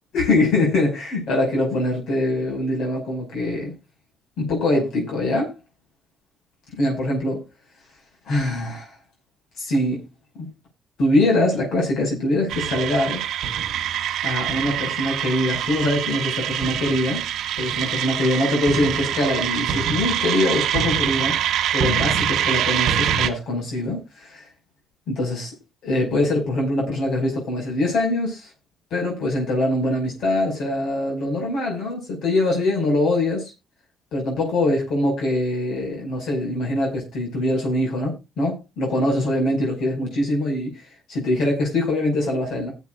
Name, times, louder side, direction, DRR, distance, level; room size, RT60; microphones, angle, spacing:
voice 1, 0.1-3.7 4.4-5.5 6.8-7.4 8.3-8.9 9.6-10.0 10.3-10.5 11.0-13.2 14.2-17.2 17.6-21.4 21.7-24.4 25.1-25.5 25.8-28.5 28.9-33.5 34.1-40.7 41.1-42.7, left 1 dB, 75° left, 6.0 m, -23 dB
sound 1, 12.5-23.3, right 9 dB, 80° right, 0.9 m, -24 dB
20.5 x 7.4 x 2.5 m
cardioid pair, 90°, 0 cm